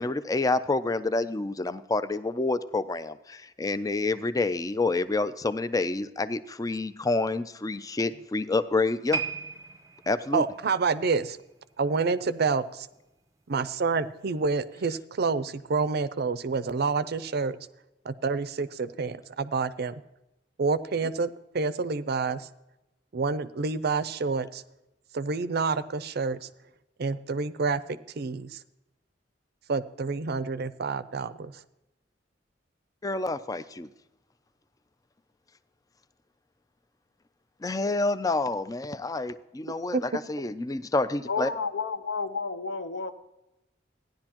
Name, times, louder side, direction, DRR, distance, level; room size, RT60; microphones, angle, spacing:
voice 1, 0.0-9.2 10.1-10.4 33.0-33.9 37.6-41.5, left 3 dB, 20° left, 14 dB, 0.4 m, -28 dB
sound 1, 9.1-12.4 12.7-13.0 13.6-13.7, right 5 dB, 15° right, 0.8 m, -37 dB
voice 2, 10.3-11.4 11.8-12.9 13.5-17.6 18.1-19.9 20.6-21.3 21.5-22.4 23.1-24.6 25.1-26.4 27.0-28.5 29.7-31.3 39.9-40.0, right 4 dB, 60° right, 14 dB, 0.5 m, -28 dB
voice 3, 41.3-43.1, left 4 dB, 65° left, 9 dB, 0.9 m, -31 dB
15.5 x 10.5 x 2.9 m, 0.93 s
head